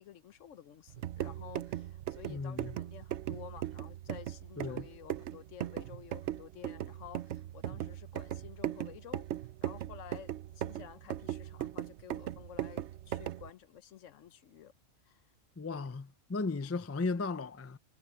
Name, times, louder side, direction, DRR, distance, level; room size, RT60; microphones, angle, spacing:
voice 1, 0.0-9.2 9.6-14.7 15.0-15.2 16.6-16.7, left 10 dB, 75° left, 1.1 m, -51 dB
sound 1, 0.9-13.5, right 12 dB, 65° right, 0.9 m, -39 dB
voice 2, 2.3-2.7 4.6-4.8 15.6-17.8, left 3 dB, 25° left, 0.3 m, -36 dB
omnidirectional pair, 1.3 m